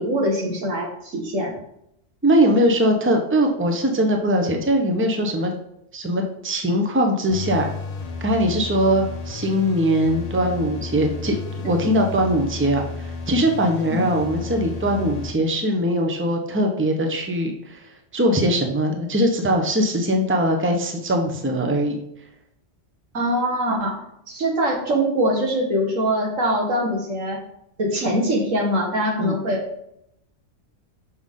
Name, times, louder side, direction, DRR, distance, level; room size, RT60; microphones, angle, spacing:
voice 1, 0.0-1.6 13.8-14.1 23.1-24.0 24.3-27.4 27.8-29.6, equal, 85° right, 0 dB, 2.0 m, -23 dB
voice 2, 2.2-5.5 5.9-7.7 8.2-11.4 11.7-17.8 18.1-22.0 29.2-29.3, equal, 10° right, 3 dB, 0.8 m, -21 dB
sound 1, 7.3-15.3, left 4 dB, 35° left, 0.8 m, -33 dB
6.2 x 6.1 x 3.7 m, 0.77 s
omnidirectional pair, 1.3 m